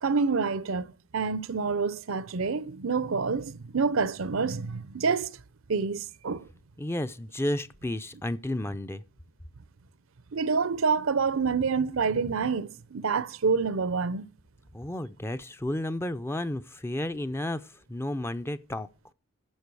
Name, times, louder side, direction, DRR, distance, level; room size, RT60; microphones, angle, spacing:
voice 1, 0.0-5.4 5.7-6.5 10.3-14.3, right 5 dB, 70° right, 0.6 m, -27 dB
voice 2, 6.8-9.0 14.7-18.9, left 1 dB, 10° left, 0.5 m, -32 dB
12.0 x 7.6 x 4.7 m
head